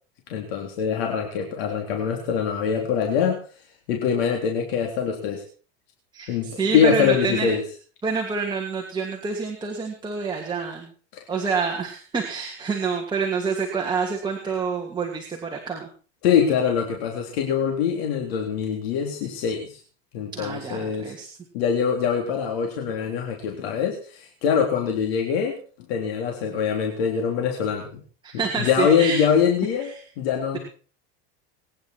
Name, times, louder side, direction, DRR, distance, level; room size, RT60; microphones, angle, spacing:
voice 1, 0.3-3.4 3.9-5.4 6.3-7.6 16.2-19.8 20.1-21.1 21.5-25.6 25.9-28.0 28.3-30.6, left 7 dB, 80° left, 2 dB, 3.7 m, -23 dB
voice 2, 6.1-7.5 8.0-10.9 11.3-15.9 20.3-21.3 28.2-29.2, right 5 dB, 15° right, 0 dB, 2.7 m, -27 dB
23.0 x 10.5 x 4.6 m, 0.40 s
supercardioid pair, 140°, 30 cm